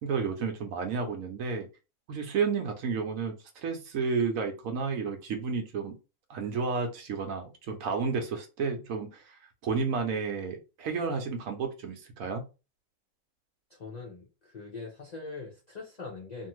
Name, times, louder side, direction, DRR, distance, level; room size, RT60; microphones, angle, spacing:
voice 1, 0.0-1.7 2.1-3.3 3.6-6.0 6.3-9.4 9.6-12.5, right 5 dB, 70° right, 1.0 m, -31 dB
voice 2, 13.7-16.5, left 3 dB, 45° left, 0.5 m, -42 dB
2.6 x 2.6 x 3.0 m
omnidirectional pair, 1.5 m